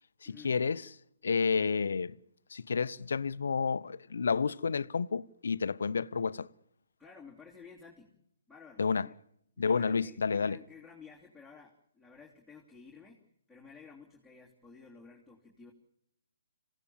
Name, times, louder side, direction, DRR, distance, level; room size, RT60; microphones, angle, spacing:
voice 1, 0.2-0.9 1.2-2.2 2.5-6.5 8.8-9.1 9.6-10.6, left 5 dB, 65° left, 0.8 m, -30 dB
voice 2, 7.0-8.2 8.5-9.1 9.6-15.7, left 5 dB, ahead, 3.2 m, -53 dB
27.0 x 17.0 x 7.3 m
figure-of-eight pair, 135°, 0 cm